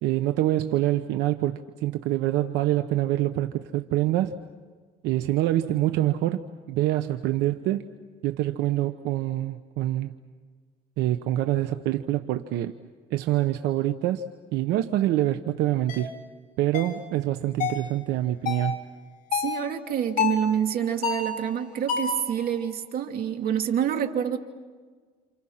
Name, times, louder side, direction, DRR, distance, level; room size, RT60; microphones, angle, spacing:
voice 1, 0.0-4.4 5.0-7.8 8.2-10.1 11.0-12.7 13.1-14.2 14.5-16.1 16.6-18.8, right 14 dB, 90° right, 9 dB, 1.1 m, -25 dB
sound 1, 15.9-16.1 16.7-17.0 17.6-17.9 18.5-18.7 19.3-19.6 20.2-20.5 21.0-21.4 21.9-22.2, left 6 dB, 55° left, 7.7 m, -28 dB
voice 2, 19.4-24.4, right 9 dB, 65° right, 4 dB, 2.9 m, -27 dB
30.0 x 29.0 x 5.8 m, 1.5 s
cardioid pair, 110°, 17 cm